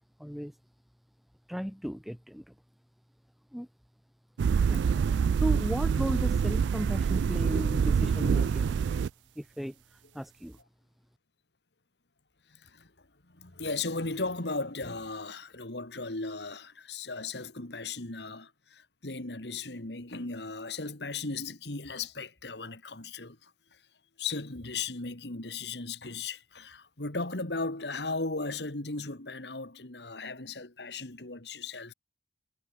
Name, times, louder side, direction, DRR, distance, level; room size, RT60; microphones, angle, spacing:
voice 1, 0.2-0.5 1.5-2.5 3.5-3.7 4.7-8.8 9.4-9.8 10.1-10.6, equal, ahead, 0.6 m, -35 dB
sound 1, 4.4-9.1, right 6 dB, 85° right, 0.3 m, -26 dB
voice 2, 12.5-12.9 13.3-23.5 24.2-31.9, left 3 dB, 75° left, 2.3 m, -36 dB
head